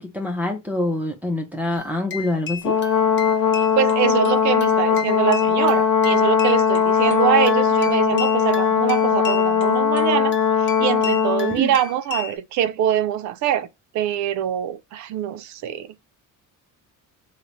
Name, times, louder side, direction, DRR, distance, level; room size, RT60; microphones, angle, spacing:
voice 1, 0.0-2.8 11.5-11.7, left 1 dB, 5° right, 0.5 m, -25 dB
sound 1, 1.8-12.4, left 7 dB, 35° left, 0.7 m, -35 dB
Brass instrument, 2.6-11.6, left 7 dB, 80° left, 0.7 m, -19 dB
voice 2, 3.6-13.7 13.9-15.9, right 10 dB, 60° right, 0.5 m, -24 dB
3.9 x 2.2 x 3.0 m
cardioid pair, 150°, 32 cm